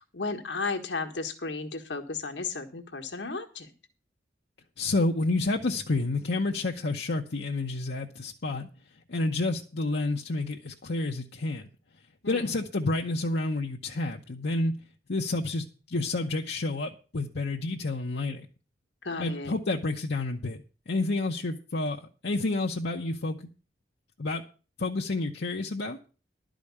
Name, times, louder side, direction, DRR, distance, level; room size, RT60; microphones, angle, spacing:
voice 1, 0.0-3.7 12.2-12.5 19.0-19.5, left 4 dB, 85° left, 1.5 m, -34 dB
voice 2, 4.8-8.7 9.1-11.7 12.3-14.7 15.1-18.5 19.2-23.4 24.2-24.4 24.8-26.0, left 2 dB, 65° left, 0.9 m, -29 dB
12.0 x 5.1 x 8.5 m
head